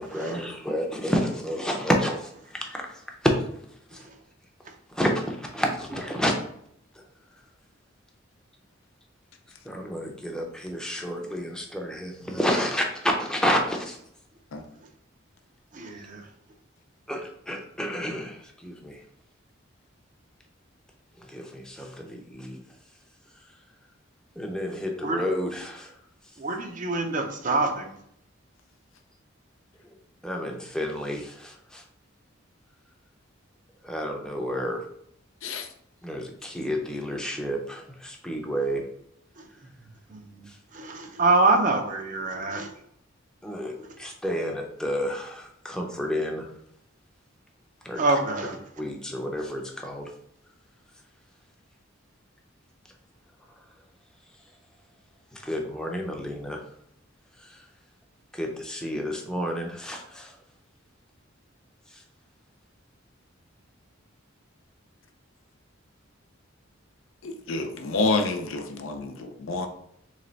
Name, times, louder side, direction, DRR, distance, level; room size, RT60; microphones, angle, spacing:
voice 1, 0.0-3.3 3.9-4.1 4.9-6.3 9.6-14.0 17.1-19.0 21.2-22.6 24.4-25.9 30.2-31.8 33.8-34.8 36.0-38.8 40.5-40.6 43.4-46.5 47.8-48.0 48.8-50.1 55.3-56.6 57.4-57.7 58.3-60.4 61.9-62.0, equal, 5° left, 1 dB, 0.6 m, -30 dB
voice 2, 15.7-16.3 25.0-25.2 26.4-27.9 39.4-39.5 40.1-42.7 43.8-43.9 48.0-48.6, right 3 dB, 40° right, 4 dB, 0.6 m, -26 dB
voice 3, 67.2-69.7, left 3 dB, 85° left, 5 dB, 0.6 m, -28 dB
3.2 x 3.2 x 3.9 m, 0.71 s
head